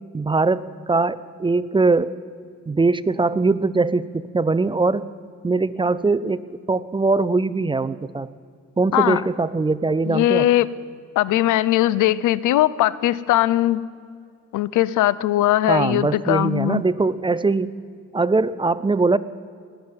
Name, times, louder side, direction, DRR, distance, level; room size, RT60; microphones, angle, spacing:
voice 1, 0.1-2.2 2.7-5.1 5.4-8.3 8.8-10.5 15.7-17.7 18.1-19.2, right 3 dB, 15° right, 17 dB, 0.5 m, -21 dB
voice 2, 10.1-10.7 11.2-13.8 14.5-16.8, left 14 dB, 80° left, 19 dB, 0.6 m, -19 dB
19.0 x 7.4 x 9.7 m, 2.3 s
cardioid pair, 90°, 30 cm